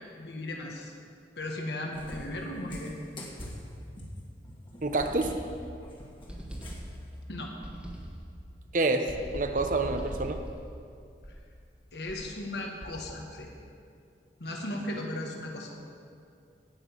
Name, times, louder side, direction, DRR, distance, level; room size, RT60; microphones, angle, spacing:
voice 1, 0.2-0.9 1.4-2.9 7.3-7.5 11.9-13.5 14.4-15.7, left 1 dB, 70° left, 1 dB, 1.5 m, -36 dB
Cat, 1.9-7.0, left 1 dB, 30° left, 1.7 m, -45 dB
voice 2, 4.8-5.4 8.7-10.4, right 2 dB, 45° right, 7 dB, 0.8 m, -28 dB
sound 1, 5.0-5.8 6.3-7.2 7.6-8.4 9.1-11.6 12.1-12.4 12.8-13.3, equal, 5° right, 1.2 m, -41 dB
16.5 x 5.9 x 7.3 m, 2.4 s
head